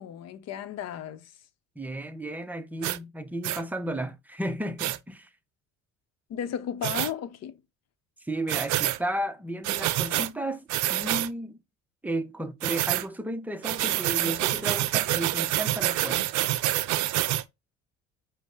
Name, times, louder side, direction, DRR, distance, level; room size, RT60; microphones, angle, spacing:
voice 1, 0.0-1.3 6.3-7.6, left 9 dB, 55° left, 0.7 m, -34 dB
voice 2, 1.8-5.3 8.2-11.6 12.0-16.3, right 1 dB, 5° right, 0.5 m, -33 dB
sound 1, 2.8-3.0 3.4-3.6 4.8-5.0 6.8-7.1 8.5-9.0 9.6-10.3 10.7-11.3 12.6-13.1 13.6-17.4, right 15 dB, 75° right, 0.5 m, -27 dB
5.3 x 2.1 x 4.7 m
cardioid pair, 100°, 30 cm